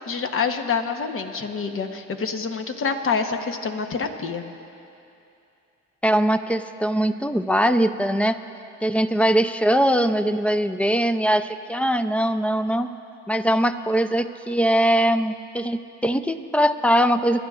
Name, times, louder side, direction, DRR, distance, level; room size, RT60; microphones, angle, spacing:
voice 1, 0.0-4.4, left 5 dB, 45° left, 6 dB, 1.0 m, -27 dB
voice 2, 6.0-8.4 8.8-12.9 13.3-17.4, equal, 5° left, 10 dB, 0.5 m, -21 dB
28.5 x 11.5 x 2.4 m, 2.7 s
cardioid pair, 90°, 30 cm